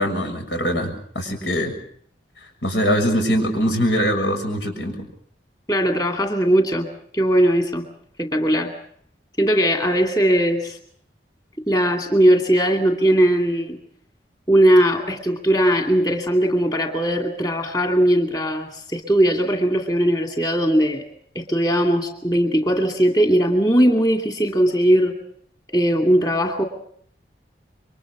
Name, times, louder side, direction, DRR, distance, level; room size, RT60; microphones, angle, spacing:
voice 1, 0.0-1.7 2.6-5.1, equal, 90° left, 4 dB, 6.7 m, -22 dB
voice 2, 5.7-6.9 7.1-7.8 8.2-8.7 9.4-10.8 11.7-13.8 14.5-21.0 21.3-25.2 25.7-26.6, right 1 dB, 20° left, 3 dB, 2.4 m, -19 dB
28.5 x 24.0 x 5.0 m, 0.62 s
head